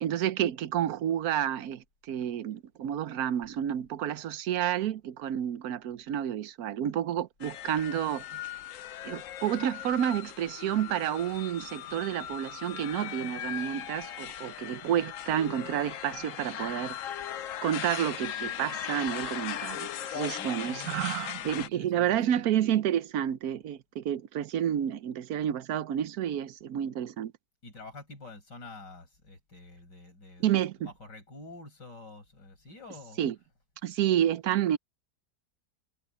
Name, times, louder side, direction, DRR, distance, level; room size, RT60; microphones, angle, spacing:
voice 1, 0.0-8.2 9.0-17.0 17.6-27.3 30.4-30.9 33.2-33.3 33.8-34.8, right 10 dB, 65° right, 1.2 m, -30 dB
sound 1, 7.4-21.7, left 11 dB, 60° left, 0.9 m, -38 dB
voice 2, 20.3-22.4 27.6-33.2, left 2 dB, 80° left, 6.6 m, -48 dB
omnidirectional pair, 1.8 m